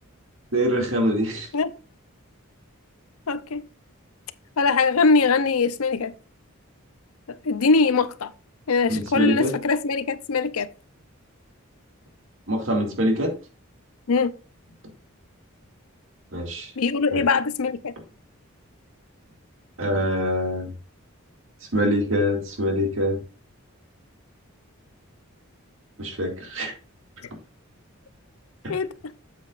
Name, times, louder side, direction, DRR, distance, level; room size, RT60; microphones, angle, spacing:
voice 1, 0.5-1.5 8.9-9.6 12.5-13.3 16.3-16.7 17.1-17.3 19.8-20.7 21.7-23.2 26.0-26.7 28.6-28.8, equal, 65° right, 2.2 m, -24 dB
voice 2, 3.3-3.6 4.6-6.1 7.4-8.3 8.7-10.7 14.1-14.3 16.8-17.9 28.7-28.9, left 4 dB, 85° left, 0.6 m, -22 dB
8.2 x 7.8 x 2.5 m
head